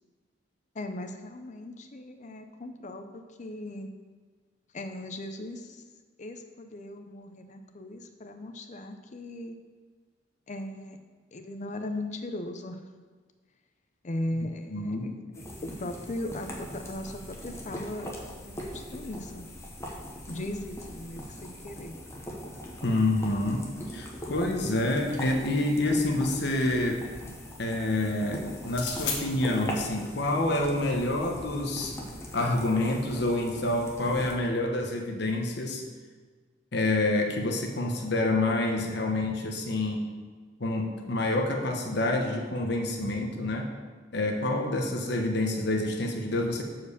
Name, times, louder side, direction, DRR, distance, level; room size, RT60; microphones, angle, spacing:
voice 1, 0.7-3.9 4.7-5.8 6.2-9.6 10.5-11.0 11.3-12.8 14.0-19.5 20.3-22.0, left 1 dB, 40° left, 7 dB, 0.5 m, -38 dB
voice 2, 14.7-15.1 22.8-27.1 27.6-32.0 32.3-35.8 36.7-40.0 40.6-43.7 44.1-46.6, left 2 dB, 65° left, 2 dB, 1.1 m, -27 dB
sound 1, 15.3-34.3, equal, 15° left, 1.1 m, -41 dB
sound 2, 24.6-25.9 28.6-29.2, left 5 dB, 80° left, 1.4 m, -36 dB
7.1 x 4.6 x 6.7 m, 1.5 s
head